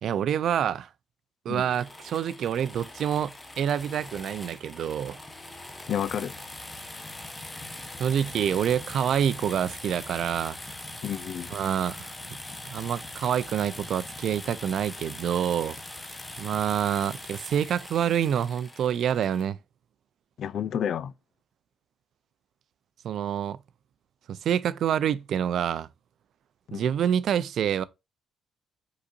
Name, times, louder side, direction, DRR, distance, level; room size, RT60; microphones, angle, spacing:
voice 1, 0.0-0.9 1.4-5.2 8.0-10.6 11.5-12.1 12.7-16.0 16.4-19.6 23.0-23.6 24.3-25.9 26.7-27.8, right 9 dB, 70° right, 0.4 m, -27 dB
sound 1, 1.7-19.5, left 2 dB, 20° left, 0.9 m, -42 dB
voice 2, 5.9-6.3 11.0-11.5 20.4-21.1 26.7-26.9, left 9 dB, 65° left, 0.4 m, -30 dB
5.1 x 4.0 x 2.5 m
cardioid pair, 90°, 0 cm